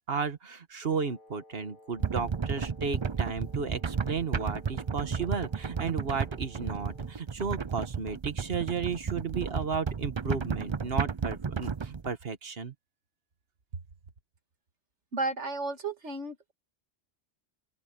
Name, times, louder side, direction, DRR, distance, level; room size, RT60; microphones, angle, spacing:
voice 1, 0.1-12.7, right 5 dB, 60° right, 1.6 m, -34 dB
Wind instrument woodwind instrument, 0.8-7.3, left 1 dB, 45° left, 3.3 m, -56 dB
sound 1, 2.0-12.1, right 6 dB, 35° right, 0.5 m, -33 dB
voice 2, 15.1-16.5, right 3 dB, 80° right, 2.5 m, -33 dB
open air
omnidirectional pair, 1.2 m